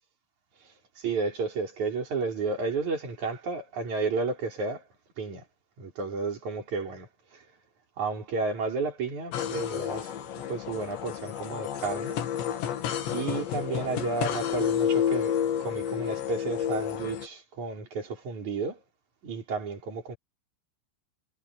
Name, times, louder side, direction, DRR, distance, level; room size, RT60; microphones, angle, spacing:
voice 1, 1.0-4.8 5.2-5.4 5.8-7.1 8.0-10.1 10.5-12.2 13.1-15.3 15.6-18.8 19.2-20.2, right 4 dB, 40° right, 6.2 m, -32 dB
sound 1, 9.3-17.3, left 9 dB, 70° left, 4.6 m, -30 dB
omnidirectional pair, 5.5 m